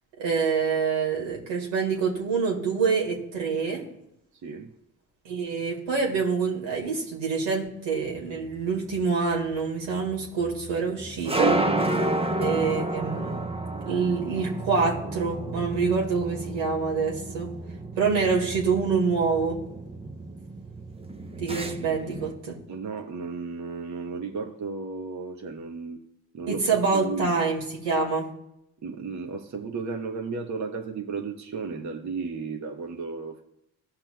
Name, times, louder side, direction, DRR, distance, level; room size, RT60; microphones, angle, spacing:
voice 1, 0.2-3.8 5.3-11.6 12.4-13.4 13.9-17.5 18.0-19.6 21.4-22.6 26.5-28.3, right 5 dB, 75° right, -1 dB, 2.0 m, -26 dB
sound 1, 8.3-22.3, right 2 dB, 15° right, 0.7 m, -31 dB
voice 2, 22.7-26.0 26.3-27.4 28.8-33.4, right 4 dB, 40° right, 3 dB, 1.0 m, -34 dB
16.5 x 5.8 x 2.3 m, 0.80 s
hypercardioid pair, 50°, 44 cm